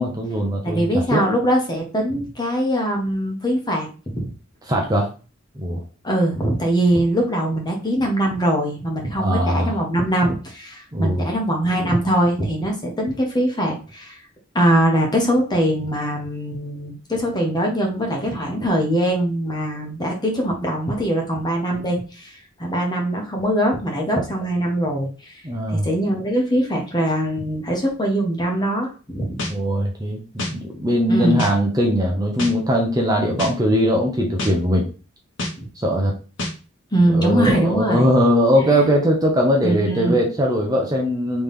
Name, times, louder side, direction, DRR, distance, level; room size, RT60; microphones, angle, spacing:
voice 1, 0.0-1.2 4.7-5.1 5.6-5.8 9.2-9.8 10.9-11.3 25.4-25.9 29.5-34.9 35.8-36.1 37.1-41.4, equal, 20° right, 0 dB, 0.8 m, -20 dB
voice 2, 0.6-4.3 6.0-14.2 14.5-22.3 22.6-25.3 25.7-29.4 31.1-31.5 35.6-35.7 36.9-38.1 39.6-40.2, right 1 dB, 20° left, 1 dB, 1.3 m, -22 dB
sound 1, 29.4-29.5 30.4-30.5 31.4-31.5 32.4-32.5 33.4-33.5 34.4-34.5 35.4-35.5 36.4-36.5, left 1 dB, 65° left, 1.4 m, -26 dB
4.2 x 3.4 x 3.6 m, 0.34 s
head